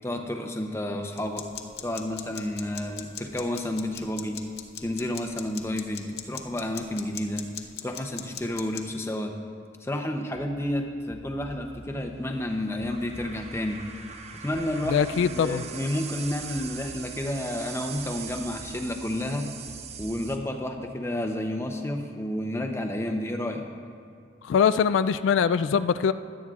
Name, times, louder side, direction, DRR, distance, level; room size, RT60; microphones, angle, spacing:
voice 1, 0.0-1.5 1.8-4.4 4.8-7.4 7.8-9.3 9.8-13.8 14.3-19.5 20.0-23.6, left 1 dB, 15° left, 3 dB, 0.6 m, -31 dB
sound 1, 1.2-8.8, left 8 dB, 55° left, 0.7 m, -42 dB
sound 2, 10.3-20.4, right 6 dB, 35° right, 0.6 m, -42 dB
voice 2, 14.9-15.6 24.4-26.1, left 7 dB, 85° left, 13 dB, 0.3 m, -22 dB
16.5 x 11.5 x 2.4 m, 2.4 s
head